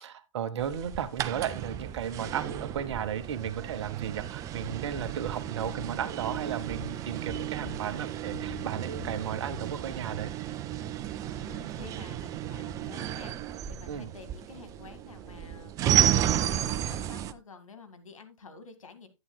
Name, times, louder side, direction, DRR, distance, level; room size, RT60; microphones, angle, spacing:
voice 1, 0.0-10.3 13.9-14.1, right 9 dB, 55° right, 1.1 m, -34 dB
sound 1, 0.6-17.3, right 11 dB, 20° right, 0.4 m, -33 dB
sound 2, 4.6-9.9, left 4 dB, 30° left, 4.7 m, -45 dB
voice 2, 11.3-19.1, left 4 dB, 80° left, 1.9 m, -49 dB
11.0 x 8.9 x 2.2 m
hypercardioid pair, 125°, 17 cm